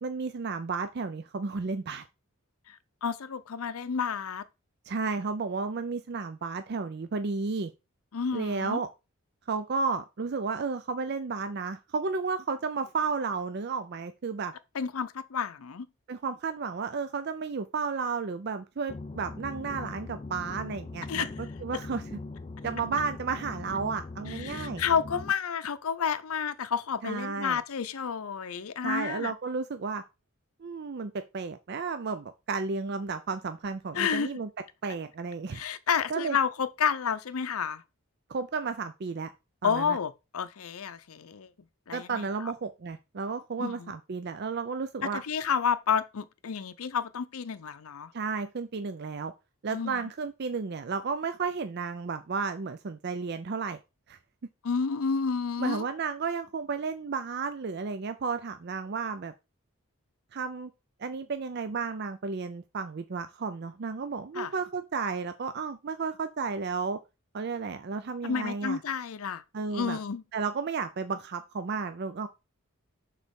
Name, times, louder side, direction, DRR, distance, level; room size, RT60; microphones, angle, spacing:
voice 1, 0.0-2.0 4.9-7.7 8.3-8.9 9.5-14.5 16.1-21.3 21.6-22.2 22.6-24.8 27.0-27.6 28.8-30.0 30.6-34.5 34.8-35.6 36.1-36.4 38.3-39.3 39.6-40.0 41.9-45.2 48.1-49.3 49.6-53.8 54.1-54.2 55.6-59.3 60.3-60.7 61.0-67.0 67.3-68.8 69.5-70.0 70.3-72.3, right 4 dB, 50° right, 0.4 m, -33 dB
voice 2, 2.7-4.4 8.1-8.8 14.7-15.9 21.1-21.3 24.3-29.3 33.9-34.3 35.5-37.8 39.6-41.5 41.9-42.5 43.6-43.9 45.0-48.1 49.7-50.0 54.6-55.8 64.3-64.5 68.2-69.4 69.7-70.2, left 6 dB, 75° left, 0.5 m, -30 dB
sound 1, 18.9-25.3, left 3 dB, 25° left, 0.3 m, -40 dB
6.4 x 4.1 x 5.2 m
head